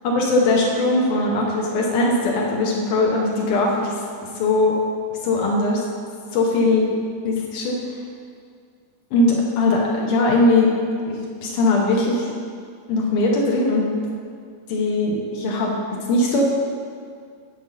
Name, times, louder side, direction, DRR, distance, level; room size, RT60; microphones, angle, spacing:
voice 1, 0.0-4.0 4.4-4.8 5.2-5.8 6.3-6.8 7.2-7.8 9.1-10.7 11.1-12.3 12.9-13.9 14.7-16.4, left 2 dB, 80° left, -2 dB, 1.8 m, -20 dB
8.0 x 4.7 x 6.9 m, 2.2 s
omnidirectional pair, 5.0 m